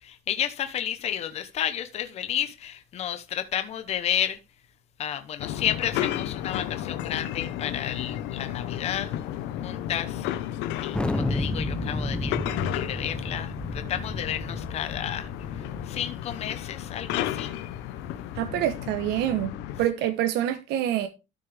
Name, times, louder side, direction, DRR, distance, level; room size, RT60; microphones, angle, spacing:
voice 1, 0.0-4.4 5.0-9.2 9.6-10.3 10.8-15.3 15.6-17.5, left 10 dB, 35° left, 1.0 m, -32 dB
sound 1, 5.4-19.9, left 11 dB, 85° left, 1.1 m, -33 dB
Thunder, 10.9-16.1, left 1 dB, 5° left, 0.7 m, -32 dB
voice 2, 18.3-19.5 19.8-21.1, right 12 dB, 65° right, 1.1 m, -26 dB
13.0 x 6.4 x 3.5 m
cardioid pair, 175°, 18 cm